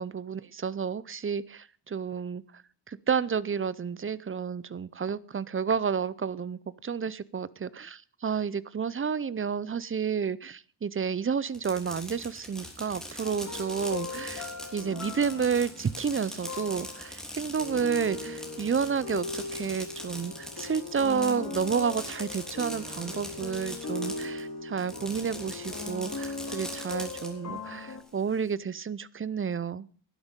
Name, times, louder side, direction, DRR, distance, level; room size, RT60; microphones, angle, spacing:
voice 1, 0.0-2.4 2.9-29.9, right 6 dB, 30° right, 0.5 m, -31 dB
Fireworks, 11.5-24.4 24.8-27.3, left 1 dB, ahead, 3.2 m, -41 dB
sound 1, 13.2-28.0, left 3 dB, 40° left, 2.2 m, -39 dB
11.5 x 11.5 x 5.2 m
wide cardioid pair, 100°, 41 cm